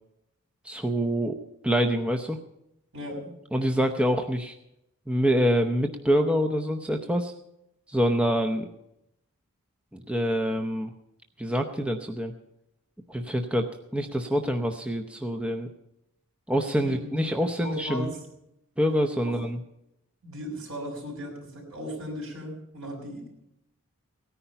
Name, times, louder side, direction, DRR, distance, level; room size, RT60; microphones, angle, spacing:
voice 1, 0.6-1.4 1.6-2.4 3.5-4.6 5.1-7.3 7.9-8.7 9.9-10.9 11.4-12.3 13.1-13.7 13.9-15.7 16.5-18.1 18.8-19.6, equal, 5° right, 4 dB, 0.7 m, -26 dB
voice 2, 2.9-3.3 16.8-17.1 17.6-18.2 19.2-19.4 20.2-23.5, equal, 70° right, 1 dB, 5.5 m, -37 dB
17.5 x 10.0 x 5.6 m, 0.83 s
head